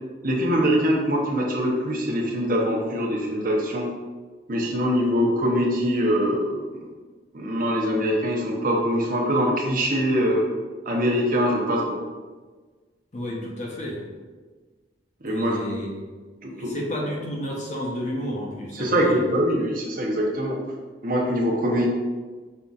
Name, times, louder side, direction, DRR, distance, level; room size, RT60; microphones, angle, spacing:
voice 1, 0.2-3.9 4.5-6.5 7.3-10.4 10.9-12.0 15.2-15.6 16.4-16.7 18.7-20.6 21.0-21.9, equal, 50° right, -1 dB, 0.9 m, -23 dB
voice 2, 13.1-14.1 15.3-15.9 16.5-19.2, equal, 45° left, -1 dB, 0.7 m, -31 dB
5.5 x 4.0 x 2.4 m, 1.4 s
head